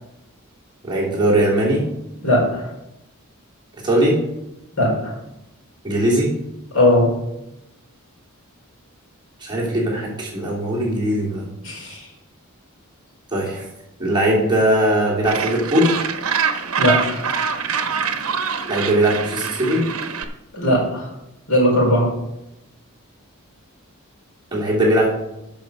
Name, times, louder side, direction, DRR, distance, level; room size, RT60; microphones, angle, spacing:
voice 1, 0.8-1.8 3.8-4.1 5.8-6.3 9.4-11.4 13.3-13.7 14.0-15.9 18.7-19.8 24.5-25.1, right 1 dB, 20° right, -5 dB, 3.0 m, -19 dB
voice 2, 2.2-2.7 4.7-5.1 6.7-7.1 11.6-12.0 16.8-17.2 20.5-21.1 21.5-22.1, left 1 dB, 70° left, -4 dB, 4.6 m, -18 dB
Gull seagull, 15.2-20.2, right 6 dB, 75° right, 1.0 m, -24 dB
9.2 x 6.2 x 6.7 m, 0.90 s
head